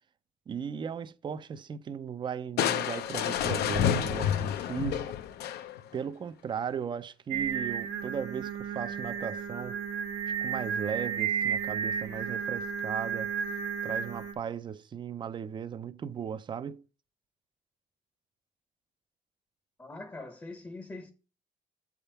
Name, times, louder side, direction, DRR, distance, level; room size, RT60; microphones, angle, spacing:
voice 1, 0.5-5.2 5.9-9.8 10.3-13.3 13.8-16.8, right 7 dB, 30° right, 0.4 m, -37 dB
Crushing, 2.6-6.0, left 9 dB, 75° left, 0.6 m, -29 dB
Singing, 7.3-14.3, right 7 dB, 85° right, 1.3 m, -33 dB
voice 2, 19.8-21.1, left 2 dB, 15° left, 0.7 m, -43 dB
7.9 x 3.5 x 5.5 m
cardioid pair, 110°, 17 cm